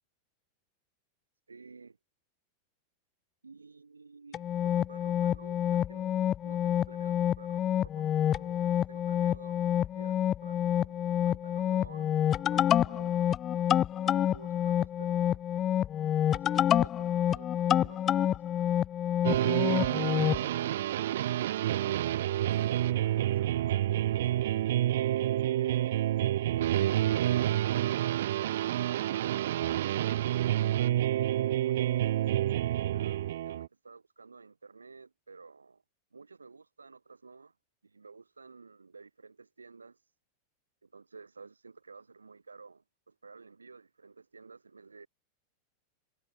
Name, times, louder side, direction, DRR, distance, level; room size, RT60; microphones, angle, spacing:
voice 1, 1.5-2.0 3.4-13.2 13.9-15.5 16.3-18.4 19.7-21.2 21.8-24.5 25.4-25.9 30.6-32.0 32.9-35.8 36.1-37.5 37.8-40.0 40.8-45.1, right 4 dB, 75° right, 3.7 m, -52 dB
sound 1, 4.3-20.4, left 10 dB, 30° left, 0.5 m, -28 dB
sound 2, 19.2-33.7, right 13 dB, 60° right, 0.3 m, -28 dB
Explosion, 22.5-25.5, right 7 dB, 20° right, 3.5 m, -60 dB
figure-of-eight pair, 90°, 0 cm